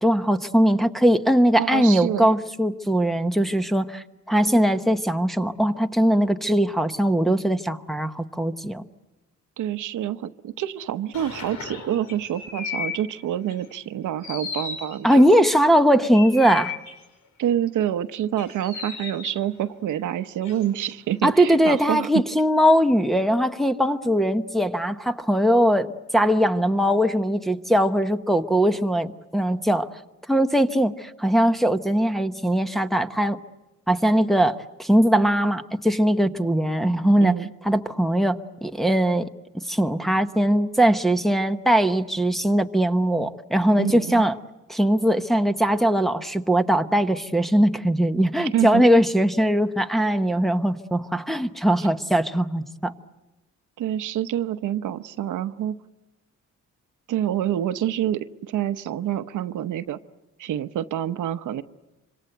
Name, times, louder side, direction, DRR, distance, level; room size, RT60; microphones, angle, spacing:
voice 1, 0.0-8.8 15.0-16.8 21.2-29.9 30.3-33.4 33.9-37.3 37.6-39.3 39.7-44.3 44.7-52.9, equal, ahead, 6 dB, 0.9 m, -20 dB
voice 2, 1.6-2.3 9.6-15.2 17.4-22.1 37.2-37.5 43.8-44.2 48.4-48.8 53.8-55.8 57.1-60.0 60.4-61.6, right 11 dB, 85° right, 10 dB, 1.0 m, -27 dB
sound 1, 11.1-13.0 13.5-13.7 14.2-15.4 16.1-17.0 18.4-19.4 20.4-20.9, left 6 dB, 80° left, 5.1 m, -35 dB
26.5 x 26.0 x 8.0 m, 1.0 s
cardioid pair, 135°, 30 cm